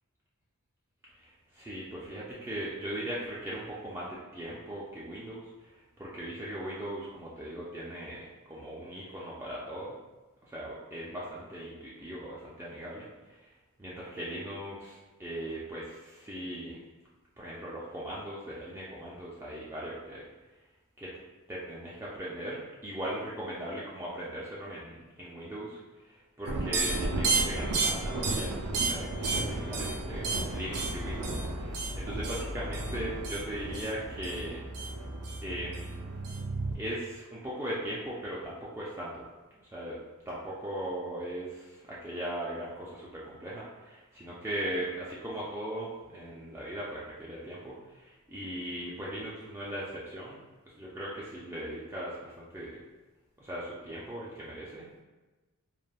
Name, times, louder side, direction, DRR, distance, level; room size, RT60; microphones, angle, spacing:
voice 1, 1.2-5.4 6.0-9.9 10.5-13.5 13.8-16.8 17.4-20.3 21.0-21.1 21.5-34.6 35.4-36.0 36.7-39.3 39.7-40.0 40.3-50.4 50.7-52.8 53.4-55.0, right 1 dB, 10° right, -7 dB, 0.3 m, -39 dB
sound 1, 26.5-36.7, right 3 dB, 80° right, 0.5 m, -32 dB
3.3 x 2.2 x 2.3 m, 1.2 s
head